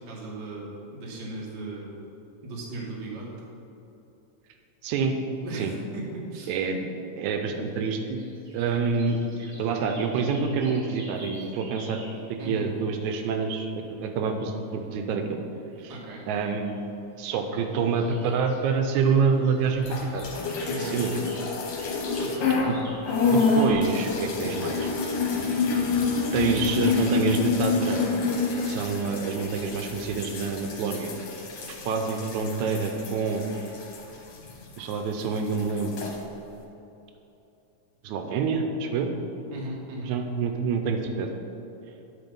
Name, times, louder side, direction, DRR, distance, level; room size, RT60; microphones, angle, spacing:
voice 1, 0.1-1.9 2.4-3.3 5.4-5.7 5.9-6.6 12.4-12.7 15.9-16.2 20.7-21.0 22.2-22.5 22.8-22.9 39.5-40.1, right 2 dB, 45° right, -3 dB, 1.5 m, -37 dB
voice 2, 4.8-5.2 5.5-5.7 6.5-6.9 7.2-8.2 8.5-12.0 12.3-15.4 15.8-15.9 16.3-16.8 17.2-20.3 20.8-21.3 22.7-22.8 23.2-24.9 25.3-25.6 26.3-28.1 28.6-31.1 31.7-33.5 34.8-36.0 38.0-39.1 40.0-41.4, right 5 dB, 85° right, 5 dB, 2.0 m, -27 dB
sound 1, 7.3-14.5 15.5-16.7 17.2-23.9, right 1 dB, 30° right, 1.4 m, -49 dB
sound 2, 19.8-22.7 23.0-34.9 35.2-36.2, left 4 dB, 75° left, 2.3 m, -27 dB
9.7 x 4.2 x 5.3 m, 2.9 s
omnidirectional pair, 3.3 m